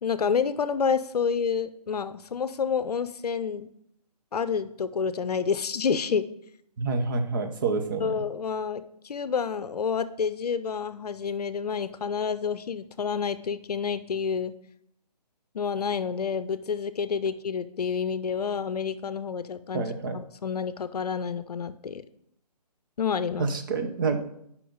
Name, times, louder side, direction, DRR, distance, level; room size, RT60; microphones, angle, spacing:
voice 1, 0.0-3.7 4.3-6.3 8.0-14.5 15.5-22.0 23.0-23.5, left 6 dB, 65° left, 13 dB, 0.6 m, -29 dB
voice 2, 6.8-8.2 19.7-20.2 23.4-24.2, right 4 dB, 30° right, 5 dB, 0.8 m, -28 dB
9.2 x 5.8 x 3.9 m, 0.72 s
hypercardioid pair, 155°, 21 cm